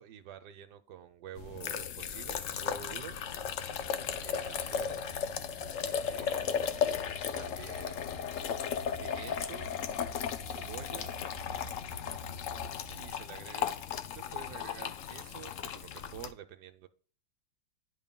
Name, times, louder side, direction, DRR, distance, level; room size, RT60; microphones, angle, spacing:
voice 1, 0.0-3.2 4.2-5.1 5.8-6.7 7.4-8.5 9.0-9.7 10.5-11.2 12.9-13.7 14.1-16.9, right 10 dB, 75° right, 9 dB, 1.1 m, -48 dB
sound 1, 1.4-16.3, left 8 dB, 80° left, 0.6 m, -36 dB
sound 2, 2.0-13.1, equal, 35° left, 2.5 m, -49 dB
11.0 x 5.4 x 2.2 m, 0.41 s
omnidirectional pair, 2.0 m